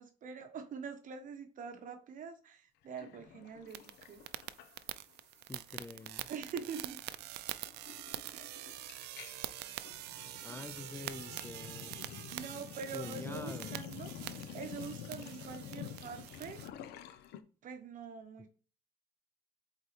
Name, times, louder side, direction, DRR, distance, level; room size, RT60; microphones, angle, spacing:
voice 1, 0.0-4.2 6.3-7.0 8.3-8.7 12.3-14.1 14.5-16.7 17.6-18.5, right 6 dB, 50° right, 1.0 m, -44 dB
Sink (filling or washing), 2.9-5.2 5.4-5.7 6.0-17.4, left 9 dB, 80° left, 0.8 m, -49 dB
sound 1, 3.7-16.7, right 15 dB, 80° right, 0.5 m, -45 dB
voice 2, 5.5-6.3 10.4-12.0 12.9-13.8, left 3 dB, 15° left, 0.5 m, -46 dB
8.1 x 4.1 x 3.3 m
cardioid pair, 110°, 17 cm